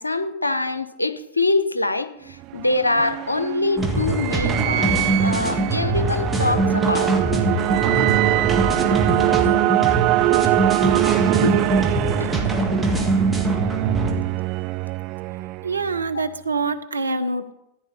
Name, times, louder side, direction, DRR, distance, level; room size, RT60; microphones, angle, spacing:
voice 1, 0.0-4.9 5.2-7.1 11.4-12.3, left 2 dB, 85° left, 11 dB, 0.8 m, -24 dB
sound 1, 2.3-16.0, right 18 dB, 40° right, 0.3 m, -23 dB
sound 2, 3.8-14.1, right 2 dB, 5° right, 2.0 m, -23 dB
voice 2, 15.6-17.5, right 3 dB, 75° right, 9 dB, 0.8 m, -25 dB
14.0 x 9.7 x 4.2 m, 0.85 s
figure-of-eight pair, 90°, 0 cm